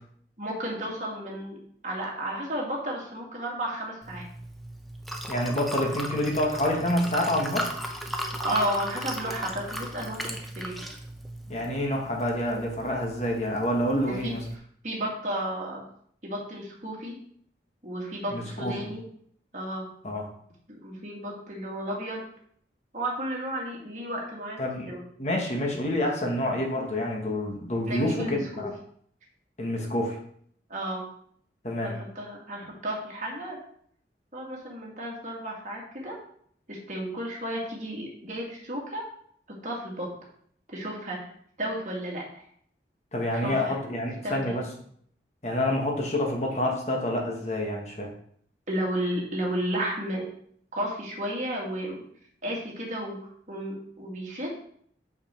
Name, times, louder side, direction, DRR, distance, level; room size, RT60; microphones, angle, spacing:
voice 1, 0.4-1.6 1.8-4.2 8.4-10.7 14.0-15.8 16.2-17.2 17.8-19.1 19.5-19.9 20.7-22.2 22.9-24.6 24.9-25.0 27.9-28.7 30.7-31.1 31.8-33.6 34.3-36.1 36.7-39.0 39.6-40.1 40.7-41.3 41.6-42.4 43.4-43.7 44.2-44.6 48.7-50.2 50.7-52.0 52.4-53.2 53.5-54.6, right 1 dB, 45° right, -2 dB, 2.1 m, -33 dB
Liquid, 4.0-14.6, equal, ahead, 0.6 m, -37 dB
voice 2, 5.3-7.7 11.5-14.4 18.3-18.9 20.0-20.3 24.6-24.9 25.2-28.7 29.6-30.2 31.6-31.9 43.1-44.6 45.4-48.1, left 1 dB, 40° left, 1 dB, 1.3 m, -28 dB
6.5 x 5.8 x 4.4 m, 0.62 s
head